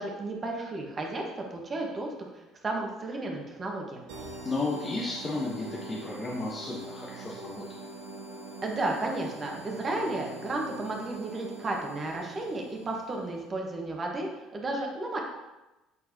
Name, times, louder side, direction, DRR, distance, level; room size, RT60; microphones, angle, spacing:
voice 1, 0.0-4.0 8.6-15.2, right 2 dB, 35° right, 0 dB, 1.4 m, -33 dB
sound 1, 4.1-13.4, right 2 dB, 70° right, 0.9 m, -44 dB
voice 2, 4.4-7.6, left 2 dB, 30° left, -3 dB, 1.0 m, -33 dB
8.3 x 4.5 x 2.8 m, 1.0 s
hypercardioid pair, 60°, 0 cm